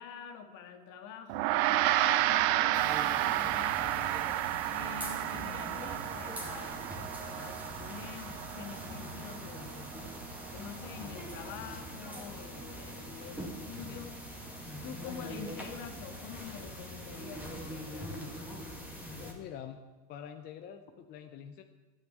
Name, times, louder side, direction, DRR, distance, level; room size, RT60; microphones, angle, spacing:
voice 1, 0.0-4.2 4.7-9.9 10.5-14.2 14.8-18.3, left 7 dB, 40° left, 7 dB, 2.0 m, -47 dB
Gong, 1.3-10.8, right 15 dB, 45° right, 0.7 m, -31 dB
sound 1, 2.7-19.3, equal, 5° right, 2.0 m, -43 dB
voice 2, 19.2-21.6, left 8 dB, 20° left, 7 dB, 0.5 m, -46 dB
12.0 x 9.3 x 8.7 m, 1.3 s
supercardioid pair, 140°, 48 cm